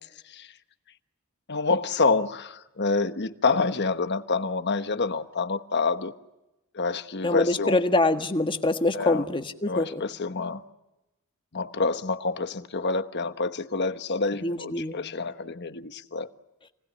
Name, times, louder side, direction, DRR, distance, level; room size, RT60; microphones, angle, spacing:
voice 1, 1.5-6.1 6.7-7.8 8.9-9.2 9.7-10.6 11.5-16.3, left 4 dB, 50° left, 1.2 m, -27 dB
voice 2, 7.2-10.0 14.4-15.0, left 2 dB, 25° left, 1.5 m, -25 dB
29.0 x 19.5 x 9.9 m
head